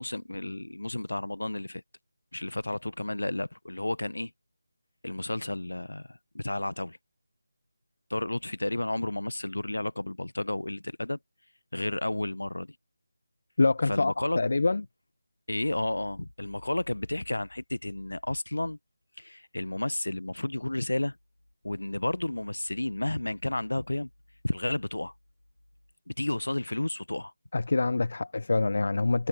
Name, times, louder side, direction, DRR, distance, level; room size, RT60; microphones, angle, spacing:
voice 1, 0.0-1.8 2.3-4.3 5.0-7.0 8.1-11.2 11.7-12.8 13.9-14.4 15.5-18.8 19.2-21.2 21.6-24.1 24.4-25.1 26.1-27.3, left 1 dB, 75° left, 1.0 m, -32 dB
voice 2, 13.6-14.8 27.5-29.3, left 3 dB, 55° left, 1.0 m, -25 dB
figure-of-eight pair, 160°, 0 cm